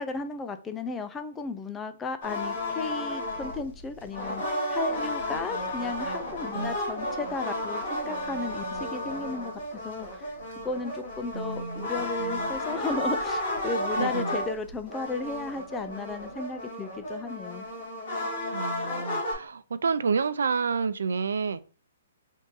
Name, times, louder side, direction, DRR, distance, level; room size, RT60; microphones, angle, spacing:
voice 1, 0.0-10.3 10.6-17.6, left 3 dB, 10° left, 0.3 m, -34 dB
sound 1, 2.2-19.3, left 1 dB, 45° left, 1.5 m, -33 dB
voice 2, 11.3-11.9 12.2-12.5 14.0-14.4 18.5-21.6, right 5 dB, 85° right, 0.3 m, -29 dB
3.6 x 2.6 x 3.9 m
hypercardioid pair, 160°, 0 cm